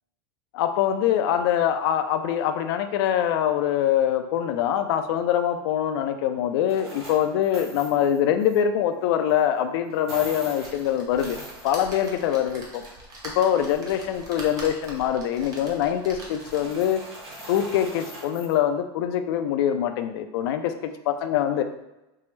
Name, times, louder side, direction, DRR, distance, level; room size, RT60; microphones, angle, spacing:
voice 1, 0.5-11.4 11.6-12.8 13.2-17.0 17.5-21.6, left 10 dB, 70° left, 8 dB, 0.4 m, -24 dB
sound 1, 6.6-8.6 9.3-9.4 9.9-12.4 12.6-13.8 14.1-14.7 16.0-18.6, right 1 dB, 90° right, 1.5 m, -42 dB
sound 2, 10.6-16.8 17.4-17.5 17.7-17.8, right 1 dB, 30° right, 0.8 m, -42 dB
4.5 x 2.0 x 3.1 m, 0.95 s
supercardioid pair, 140°, 13 cm